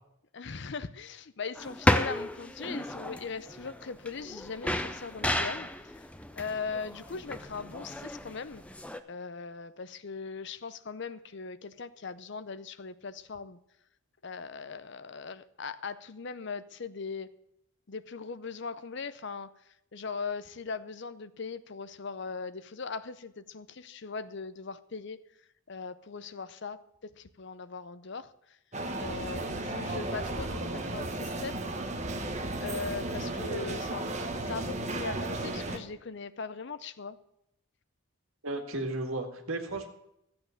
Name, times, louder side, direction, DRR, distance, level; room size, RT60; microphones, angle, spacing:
voice 1, 0.3-6.1 6.3-8.6 9.1-13.6 14.2-17.3 17.9-19.5 19.9-25.2 25.7-28.6 29.0-31.5 32.6-37.2, left 5 dB, 55° left, 14 dB, 0.6 m, -39 dB
sound 1, 1.5-9.0, left 1 dB, 5° left, 0.5 m, -33 dB
sound 2, 28.7-35.8, right 2 dB, 30° right, 1.1 m, -34 dB
voice 2, 38.4-39.9, right 2 dB, 70° right, 4 dB, 2.0 m, -34 dB
13.0 x 8.7 x 6.5 m, 0.80 s
head